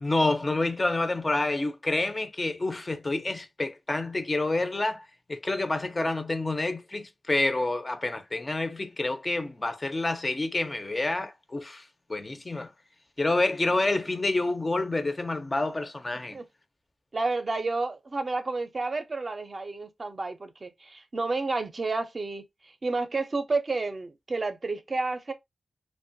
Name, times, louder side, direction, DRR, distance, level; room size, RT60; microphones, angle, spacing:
voice 1, 0.0-12.7 13.2-16.4, left 2 dB, 30° left, 0.4 m, -28 dB
voice 2, 17.1-22.4 22.8-25.3, right 3 dB, 40° right, 0.5 m, -30 dB
2.8 x 2.1 x 2.6 m
wide cardioid pair, 110°, 0 cm